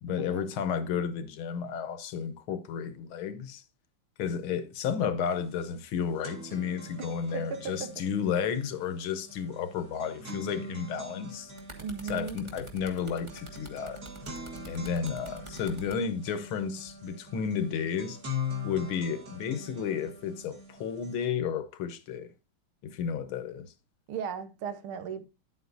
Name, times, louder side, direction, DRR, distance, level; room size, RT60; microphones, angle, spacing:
voice 1, 0.0-3.6 4.2-11.5 12.0-14.0 14.7-18.2 18.6-22.3 22.8-23.7, left 7 dB, 80° left, 1.8 m, -32 dB
sound 1, 5.3-5.4 5.7-21.3, left 4 dB, 45° right, 2.4 m, -42 dB
voice 2, 7.0-7.9 11.8-12.4 24.1-25.2, right 7 dB, 80° right, 1.8 m, -36 dB
sound 2, 11.3-16.0 16.9-17.1, right 3 dB, 15° right, 1.2 m, -47 dB
10.0 x 8.1 x 2.6 m
omnidirectional pair, 2.3 m